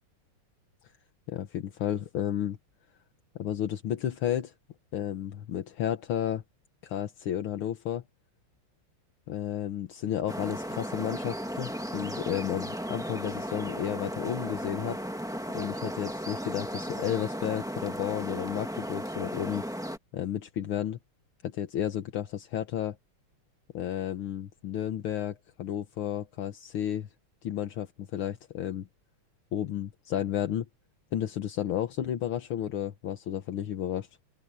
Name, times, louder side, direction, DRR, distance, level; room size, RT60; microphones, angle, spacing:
voice 1, 1.3-2.6 3.4-4.5 4.9-6.4 6.8-8.0 9.3-15.0 15.5-19.6 20.1-21.0 21.4-23.0 23.7-27.1 27.4-28.9 29.5-30.7 31.1-34.1, left 10 dB, 75° left, 2.0 m, -32 dB
sound 1, 10.3-20.0, equal, ahead, 1.8 m, -35 dB
open air
omnidirectional pair, 2.4 m